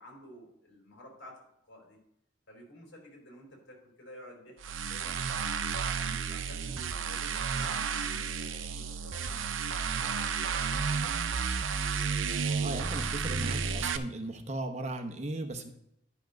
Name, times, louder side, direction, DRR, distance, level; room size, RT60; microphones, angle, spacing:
voice 1, 0.0-2.0 2.5-5.2 5.9-12.1, equal, 75° left, 0 dB, 4.2 m, -52 dB
sound 1, 4.6-14.0, right 6 dB, 85° right, 0.6 m, -32 dB
voice 2, 12.6-15.7, right 1 dB, 35° right, 5 dB, 0.9 m, -37 dB
10.5 x 5.9 x 5.1 m, 0.77 s
head